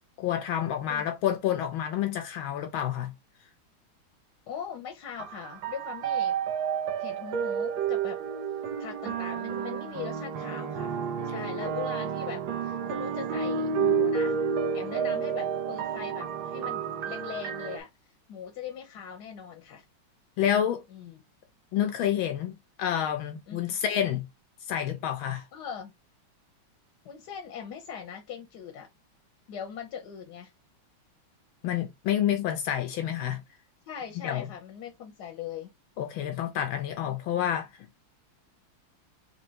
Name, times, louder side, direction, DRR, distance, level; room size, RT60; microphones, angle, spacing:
voice 1, 0.2-3.1 20.4-20.8 21.7-24.3 24.7-25.4 31.6-33.4 34.2-34.5 36.0-37.7, left 10 dB, 80° left, 1.4 m, -28 dB
voice 2, 4.5-6.4 7.0-8.2 8.8-11.0 11.2-14.4 14.7-17.9 18.3-19.8 20.9-21.2 23.5-23.6 25.5-25.9 27.0-28.9 29.5-30.5 33.9-35.7 37.0-37.2, left 8 dB, 60° left, 1.2 m, -40 dB
sound 1, 5.2-17.8, right 6 dB, 70° right, 1.3 m, -30 dB
4.3 x 3.0 x 2.8 m
omnidirectional pair, 2.3 m